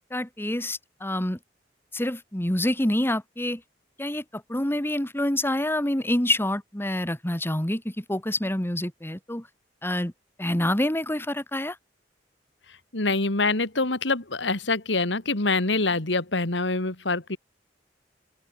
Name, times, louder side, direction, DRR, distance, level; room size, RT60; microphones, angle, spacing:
voice 1, 0.1-1.4 1.9-3.6 4.0-9.5 9.8-10.1 10.4-11.8, left 1 dB, 15° left, 2.0 m, -27 dB
voice 2, 12.9-17.4, left 3 dB, 90° left, 2.5 m, -25 dB
open air
head